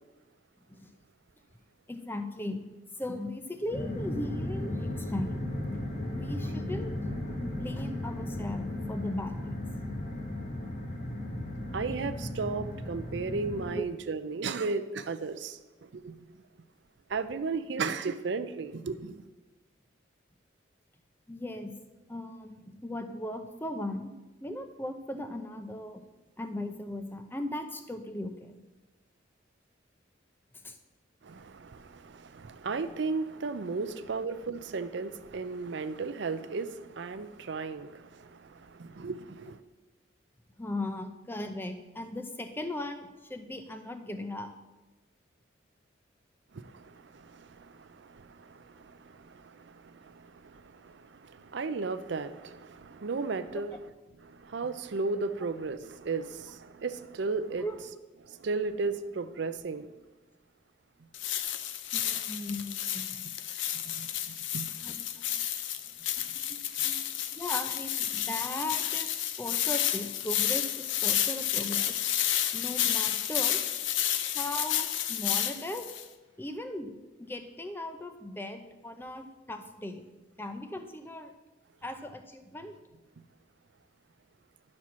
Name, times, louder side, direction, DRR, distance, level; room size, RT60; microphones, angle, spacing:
voice 1, 1.9-2.6 3.0-5.4 6.1-6.9 7.4-9.6 13.7-13.8 17.7-17.8 21.3-21.7 22.1-24.1 24.4-26.0 26.4-28.6 30.6-30.8 40.6-44.5 57.6-57.7 61.9-63.3 64.8-65.5 66.2-67.0 67.3-71.9 72.5-73.6 74.3-75.9 76.4-80.1 80.4-81.3 81.8-82.7, left 1 dB, 10° left, 7 dB, 0.6 m, -38 dB
sound 1, 3.7-13.8, left 1 dB, 35° left, 1.3 m, -35 dB
voice 2, 11.7-16.2 17.1-19.2 31.2-39.6 46.5-53.7 54.2-57.6 58.3-59.9 63.9-64.1 64.5-64.7, right 4 dB, 65° right, 11 dB, 0.5 m, -35 dB
sound 2, 61.1-76.0, left 11 dB, 75° left, 0.5 m, -31 dB
11.0 x 4.3 x 6.1 m, 1.1 s
head